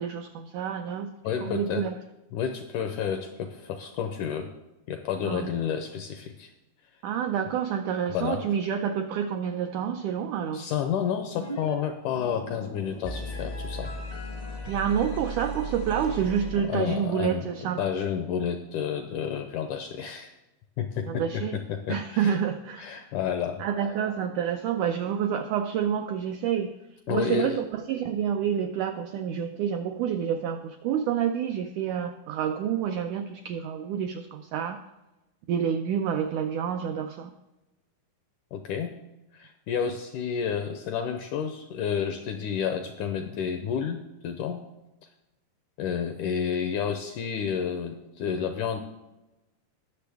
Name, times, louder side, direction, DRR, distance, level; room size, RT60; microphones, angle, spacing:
voice 1, 0.0-1.1 1.4-2.0 5.2-5.5 7.0-10.7 14.7-17.8 21.0-21.6 21.9-23.0 23.6-26.7 27.1-34.8 35.5-37.3, right 8 dB, 85° right, 6 dB, 1.7 m, -28 dB
voice 2, 1.2-1.9 2.3-4.5 4.9-6.5 8.1-8.5 10.5-13.9 16.6-17.5 17.8-20.3 20.8-22.4 22.8-23.6 27.1-27.6 38.5-38.9 39.3-44.6 45.8-48.8, left 7 dB, 85° left, 7 dB, 1.8 m, -30 dB
sound 1, 11.4-11.7 12.0-17.0, right 1 dB, 40° left, 0.5 m, -36 dB
19.5 x 6.8 x 3.4 m, 1.0 s
omnidirectional pair, 4.2 m